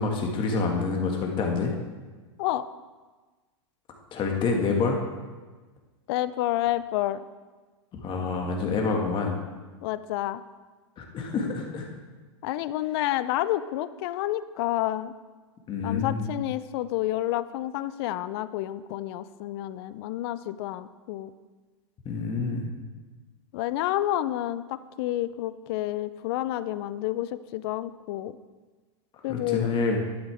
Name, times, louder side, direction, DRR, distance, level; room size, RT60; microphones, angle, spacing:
voice 1, 0.0-1.7 4.1-5.0 7.9-9.3 11.0-11.9 15.7-16.3 22.1-22.7 29.3-30.0, left 4 dB, 30° left, 1 dB, 1.8 m, -27 dB
voice 2, 6.1-7.2 9.8-10.4 12.4-15.1 15.8-21.3 23.5-28.4 29.2-29.7, left 14 dB, 55° left, 15 dB, 0.5 m, -29 dB
12.0 x 8.9 x 3.4 m, 1.3 s
hypercardioid pair, 110°, 16 cm